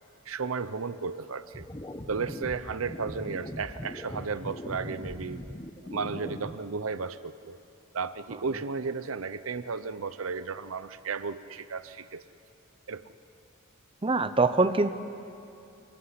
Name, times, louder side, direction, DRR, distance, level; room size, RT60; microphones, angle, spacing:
voice 1, 0.3-1.7 2.1-5.4 5.9-7.6 7.9-12.2 12.9-13.0, right 5 dB, 85° right, 14 dB, 0.7 m, -34 dB
sound 1, 1.5-6.5, left 1 dB, 20° left, 1.0 m, -40 dB
voice 2, 14.0-14.9, right 3 dB, 25° right, 11 dB, 0.8 m, -23 dB
26.0 x 15.5 x 9.8 m, 2.7 s
head